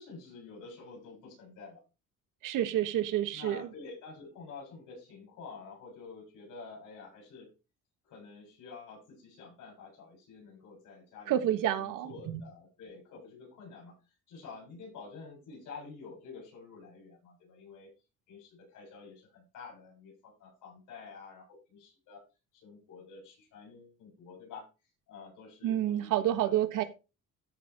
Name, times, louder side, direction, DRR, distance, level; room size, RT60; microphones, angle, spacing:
voice 1, 0.0-1.8 3.3-7.5 8.0-17.9 18.3-22.2 22.5-24.7 25.1-26.9, left 4 dB, 80° left, 6.9 m, -49 dB
voice 2, 2.4-3.7 11.3-12.4 25.6-26.8, right 12 dB, 80° right, 1.3 m, -29 dB
13.5 x 4.8 x 4.4 m
cardioid pair, 175°, 31 cm